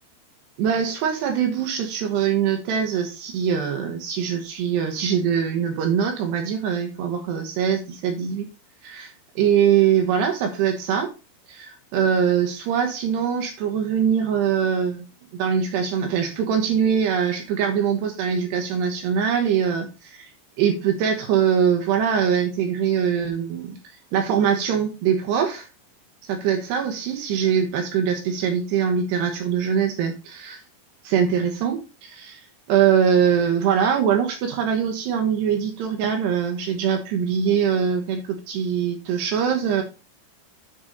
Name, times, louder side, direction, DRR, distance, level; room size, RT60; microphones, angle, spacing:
voice 1, 0.6-8.5 8.8-11.1 11.5-15.1 15.3-20.3 20.6-23.8 24.1-25.7 26.2-30.6 31.0-39.8, right 8 dB, 70° right, 5 dB, 2.8 m, -23 dB
10.0 x 4.4 x 3.9 m, 0.31 s
omnidirectional pair, 5.7 m